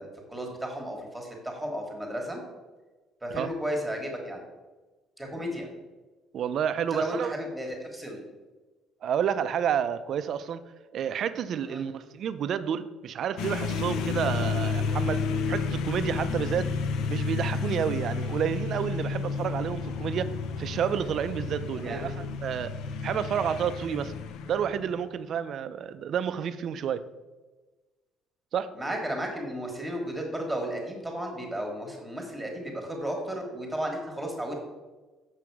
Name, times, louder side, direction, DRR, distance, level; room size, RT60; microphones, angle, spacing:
voice 1, 0.0-2.4 3.2-4.4 5.2-5.7 6.9-8.2 11.7-11.9 21.8-22.0 28.7-34.5, equal, 5° right, 1.4 m, -34 dB
voice 2, 6.3-7.3 9.0-10.6 10.9-15.2 15.5-16.7 17.1-20.3 20.6-22.8 23.0-24.1 24.5-27.0 28.5-28.8, right 8 dB, 45° right, 0.4 m, -30 dB
sound 1, 13.4-25.1, left 4 dB, 70° left, 0.6 m, -31 dB
7.7 x 6.1 x 4.7 m
cardioid pair, 160°, 0 cm